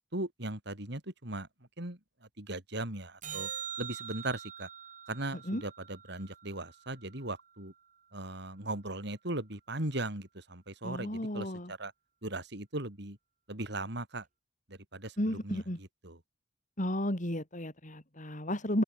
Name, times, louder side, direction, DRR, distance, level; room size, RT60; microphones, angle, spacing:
voice 1, 0.0-1.5 1.8-2.0 2.4-3.5 3.8-4.7 5.1-7.7 8.1-11.9 12.2-13.2 13.5-14.3 14.7-16.2, right 2 dB, 65° right, 5.4 m, -38 dB
sound 1, 3.2-7.7 14.2-14.3, right 9 dB, 45° right, 6.2 m, -44 dB
voice 2, 10.8-11.7 15.2-15.8 16.8-18.8, left 1 dB, 45° left, 6.1 m, -33 dB
open air
head